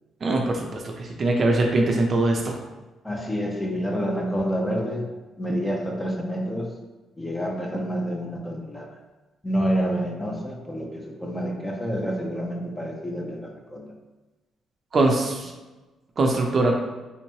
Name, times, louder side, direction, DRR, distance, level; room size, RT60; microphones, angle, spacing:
voice 1, 0.2-0.6 0.8-0.9 1.2-2.5 14.9-15.5 16.2-16.8, right 2 dB, 45° right, 1 dB, 0.5 m, -21 dB
voice 2, 3.0-5.1 5.4-6.7 7.2-8.9 9.4-13.9, equal, 10° left, 0 dB, 0.6 m, -28 dB
3.4 x 3.0 x 2.8 m, 1.1 s
cardioid pair, 90°, 0 cm